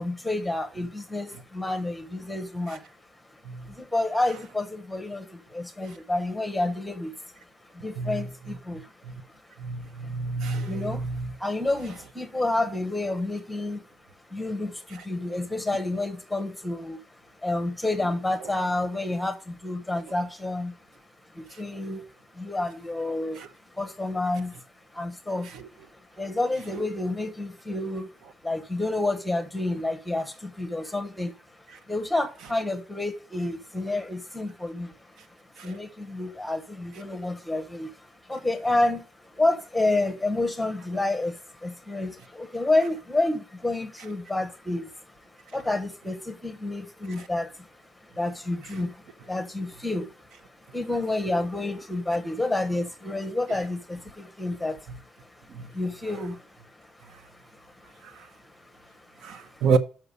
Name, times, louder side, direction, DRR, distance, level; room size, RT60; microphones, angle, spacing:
voice 1, 0.0-2.8 3.3-7.3 7.7-8.9 10.0-10.1 10.6-11.1 11.4-13.8 14.3-17.0 17.4-20.8 21.3-22.0 22.3-23.4 23.7-24.6 24.9-25.5 25.9-28.1 28.4-31.4 31.9-35.4 35.6-59.7, left 2 dB, 5° left, 1.0 m, -30 dB
voice 2, 9.6-11.3 23.4-23.5 35.6-35.8 59.2-59.8, right 5 dB, 65° right, 0.8 m, -28 dB
6.9 x 6.0 x 6.6 m
cardioid pair, 175°, 0 cm